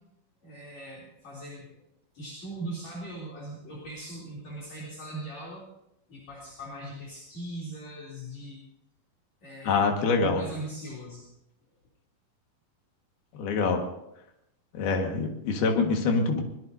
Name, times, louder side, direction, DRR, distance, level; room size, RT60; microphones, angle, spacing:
voice 1, 0.4-1.7 2.1-5.6 6.1-8.6 9.4-9.8 10.1-11.3, right 1 dB, 50° left, -5 dB, 4.4 m, -40 dB
voice 2, 9.7-10.4 13.4-13.9 14.8-16.4, left 4 dB, 85° left, 3 dB, 3.7 m, -25 dB
23.5 x 20.5 x 2.7 m, 0.81 s
omnidirectional pair, 4.3 m